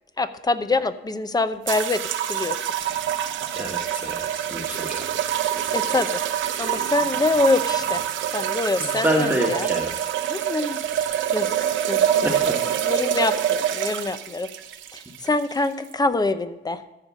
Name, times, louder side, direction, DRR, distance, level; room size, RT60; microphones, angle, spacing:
voice 1, 0.2-2.6 5.7-6.2 6.6-8.0 8.3-9.7 10.3-10.8 11.3-12.3 12.8-14.5 14.9-16.8, left 3 dB, 20° left, 12 dB, 0.7 m, -25 dB
sound 1, 1.7-15.9, right 10 dB, 75° right, 0.8 m, -26 dB
voice 2, 3.6-4.2 4.5-5.0 8.8-9.9 12.2-12.5, equal, 10° right, -1 dB, 1.5 m, -26 dB
14.0 x 5.0 x 6.2 m, 1.0 s
cardioid pair, 90°, 20 cm